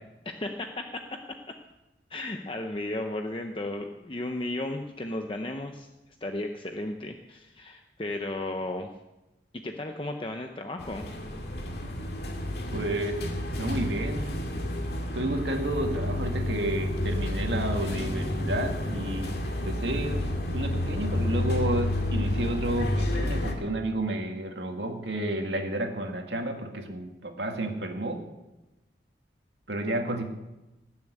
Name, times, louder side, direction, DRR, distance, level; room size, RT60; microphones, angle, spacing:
voice 1, 0.2-1.2 2.1-5.9 6.2-8.9 9.6-11.1, left 1 dB, 30° left, 4 dB, 0.8 m, -34 dB
sound 1, 10.8-23.5, left 1 dB, 60° left, 2.1 m, -30 dB
voice 2, 12.7-13.2 13.6-14.3 15.1-19.3 19.6-20.2 20.5-28.2 29.7-30.2, right 1 dB, 75° right, 3 dB, 2.0 m, -31 dB
19.0 x 7.1 x 8.1 m, 1.0 s
head